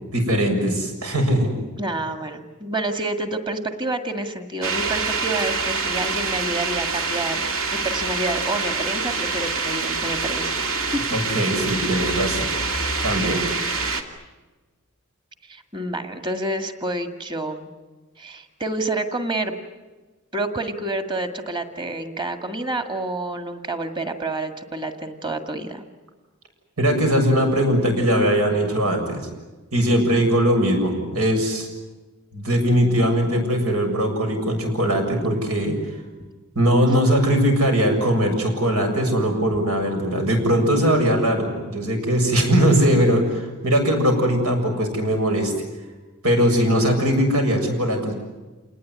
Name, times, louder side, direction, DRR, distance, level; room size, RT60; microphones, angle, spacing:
voice 1, 0.1-1.5 11.1-12.5 13.0-13.4 26.8-29.3 29.7-31.7 32.3-35.8 36.6-45.5 46.2-48.2, equal, 90° right, 4 dB, 7.2 m, -20 dB
voice 2, 1.8-10.6 10.9-11.0 15.4-17.7 18.2-19.6 20.3-25.8, right 2 dB, 20° right, 6 dB, 2.0 m, -28 dB
sound 1, 4.6-14.0, right 4 dB, 65° right, 2.6 m, -25 dB
28.0 x 20.0 x 9.8 m, 1.2 s
head